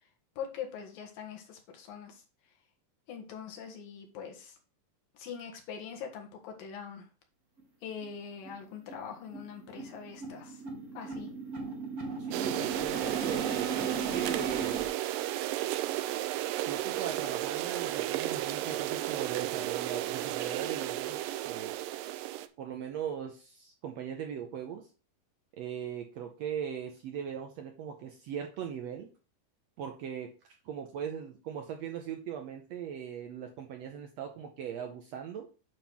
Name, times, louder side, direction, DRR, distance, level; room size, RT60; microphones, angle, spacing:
voice 1, 0.4-2.2 3.1-4.6 5.1-7.1 7.8-10.6 11.0-11.3, left 7 dB, 85° left, 3 dB, 3.3 m, -43 dB
sound 1, 7.6-7.7 8.0-8.1 8.4-8.6 8.9-14.8, right 4 dB, 40° right, 1.5 m, -37 dB
voice 2, 12.2-14.8 16.6-21.2 21.5-21.8 22.6-24.9 25.5-29.1 29.8-30.3 30.7-35.5, right 8 dB, 75° right, 4 dB, 1.6 m, -39 dB
sound 2, 12.3-22.5, right 14 dB, 90° right, 2.3 m, -33 dB
8.9 x 3.6 x 6.0 m, 0.34 s
omnidirectional pair, 3.9 m